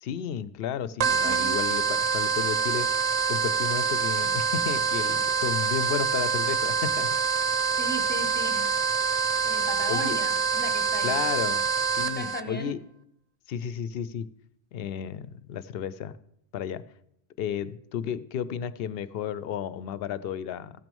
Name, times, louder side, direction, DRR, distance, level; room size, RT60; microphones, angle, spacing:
voice 1, 0.0-2.9 3.3-7.1 9.9-10.2 11.0-11.7 12.0-12.8 13.5-14.3 14.7-16.1 16.5-16.8 17.4-20.7, left 8 dB, 70° left, 17 dB, 0.7 m, -32 dB
sound 1, 1.0-12.4, right 5 dB, 50° right, 0.5 m, -26 dB
voice 2, 1.2-1.6 7.8-8.9 9.4-11.2 12.1-12.8, equal, 10° left, 6 dB, 1.0 m, -36 dB
15.0 x 6.1 x 5.3 m, 0.75 s
omnidirectional pair, 1.1 m